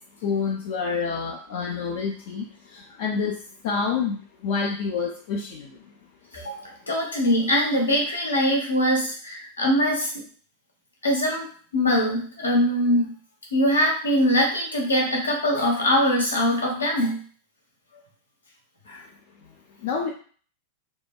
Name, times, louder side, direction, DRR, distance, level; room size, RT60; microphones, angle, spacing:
voice 1, 0.2-2.4 3.0-3.3 3.6-4.2 4.4-5.7 19.8-20.1, left 5 dB, 50° left, -1 dB, 0.4 m, -27 dB
voice 2, 6.3-10.1 11.0-11.5 11.7-13.1 13.5-17.2 18.9-19.0, equal, 75° left, -1 dB, 0.7 m, -22 dB
2.7 x 2.0 x 2.3 m, 0.43 s
figure-of-eight pair, 90°, 0 cm